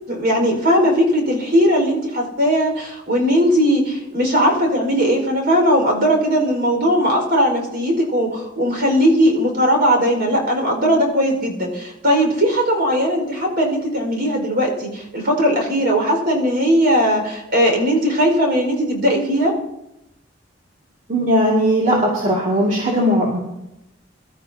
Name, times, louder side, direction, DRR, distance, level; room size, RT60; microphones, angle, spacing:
voice 1, 0.1-19.5, equal, 60° right, 1 dB, 4.9 m, -18 dB
voice 2, 21.1-23.4, equal, 40° right, -4 dB, 2.3 m, -18 dB
24.0 x 12.5 x 2.8 m, 0.89 s
head